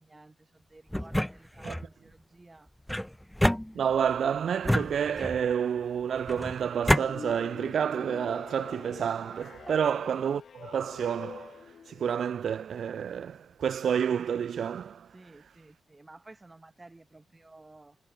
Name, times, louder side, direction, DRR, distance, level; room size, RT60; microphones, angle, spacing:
voice 1, 0.0-2.7 9.6-9.8 15.1-18.0, right 2 dB, 15° right, 1.6 m, -53 dB
sound 1, 0.9-1.9 2.9-4.1 4.6-5.5 6.3-7.1, equal, 5° left, 0.3 m, -28 dB
voice 2, 3.7-15.2, right 8 dB, 65° right, 0.4 m, -29 dB
sound 2, 6.9-12.3, left 6 dB, 50° left, 1.7 m, -45 dB
wide cardioid pair, 155°, 0 cm